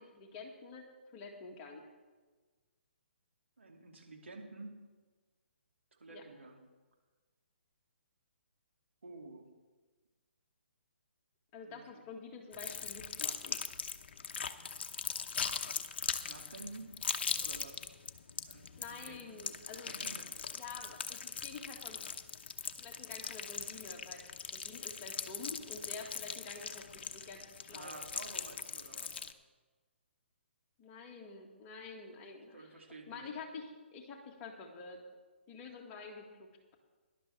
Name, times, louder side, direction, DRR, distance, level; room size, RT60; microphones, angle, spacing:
voice 1, 0.0-1.9 6.1-6.2 11.5-13.6 18.8-19.9 20.5-22.1 22.8-24.3 24.5-28.0 30.8-32.7 33.1-35.0 35.5-36.7, left 4 dB, 25° left, 1 dB, 1.9 m, -48 dB
voice 2, 3.6-4.8 6.0-6.6 9.0-9.5 11.7-12.0 16.2-16.9 17.4-17.9 18.5-19.4 19.9-20.3 27.7-29.2 32.0-32.1 32.5-33.3, right 3 dB, 80° right, 0 dB, 2.7 m, -50 dB
sound 1, 12.5-29.3, left 6 dB, 60° left, 0.8 m, -40 dB
18.0 x 11.5 x 3.4 m, 1.3 s
figure-of-eight pair, 135°, 6 cm